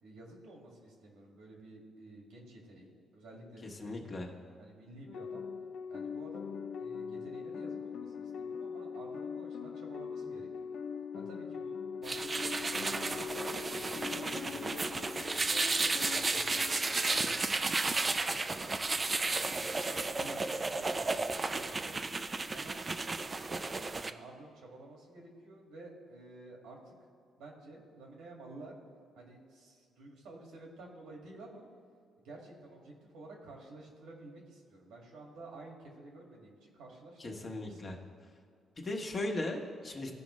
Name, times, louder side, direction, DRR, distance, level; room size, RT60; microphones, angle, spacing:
voice 1, 0.0-4.0 4.6-5.4 5.9-10.7 11.1-14.8 15.3-17.7 18.0-21.9 22.5-23.7 24.0-26.9 27.4-28.8 29.2-31.7 32.2-38.0, right 2 dB, 90° right, -1 dB, 2.0 m, -52 dB
voice 2, 3.8-4.3 37.2-38.0 38.8-40.1, left 2 dB, 40° left, 1 dB, 1.3 m, -37 dB
sound 1, 5.1-17.3, left 6 dB, 65° left, 0.5 m, -41 dB
sound 2, 12.1-24.1, right 3 dB, 30° right, 0.4 m, -33 dB
15.0 x 5.2 x 3.2 m, 2.2 s
cardioid pair, 90°, 0 cm